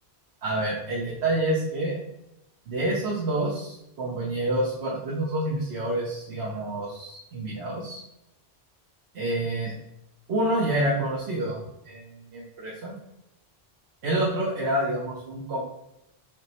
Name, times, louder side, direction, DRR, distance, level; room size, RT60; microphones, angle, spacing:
voice 1, 0.4-2.0 2.7-8.0 9.1-9.7 10.3-11.6 11.8-12.9 14.0-15.7, right 1 dB, 80° right, -5 dB, 1.1 m, -28 dB
4.9 x 3.0 x 2.9 m, 0.84 s
omnidirectional pair, 1.1 m